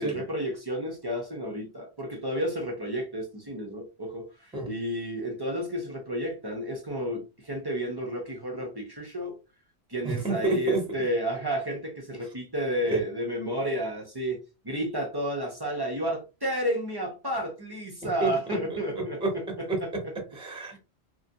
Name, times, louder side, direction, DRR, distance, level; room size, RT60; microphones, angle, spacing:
voice 1, 0.0-9.3 9.9-14.4 14.6-20.1 20.7-20.8, equal, 30° right, 0.4 m, -31 dB
voice 2, 10.0-10.9 12.2-12.3 12.9-13.0 18.0-20.8, right 2 dB, 5° right, 0.7 m, -31 dB
2.8 x 2.5 x 2.6 m
omnidirectional pair, 1.2 m